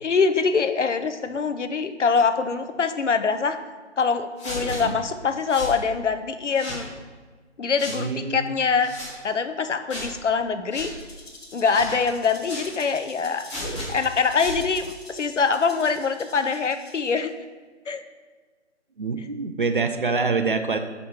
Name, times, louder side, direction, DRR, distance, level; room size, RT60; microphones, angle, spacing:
voice 1, 0.0-3.6 4.0-6.9 7.6-8.9 9.2-10.9 11.5-13.5 13.9-17.3 17.9-18.0, left 5 dB, 75° left, 9 dB, 0.7 m, -24 dB
sound 1, 4.4-4.8 5.5-5.8 6.5-6.8 7.8-8.0 8.8-9.1 9.9-10.1 10.7-10.9 11.7-12.0 12.4-12.7 13.5-13.9 14.3-14.6, left 1 dB, 25° left, 1.4 m, -34 dB
voice 2, 7.9-8.6 19.0-20.8, right 4 dB, 45° right, 7 dB, 0.5 m, -26 dB
Rattle (instrument), 10.8-17.3, left 2 dB, 55° left, 1.2 m, -47 dB
6.1 x 5.0 x 4.4 m, 1.4 s
figure-of-eight pair, 155°, 36 cm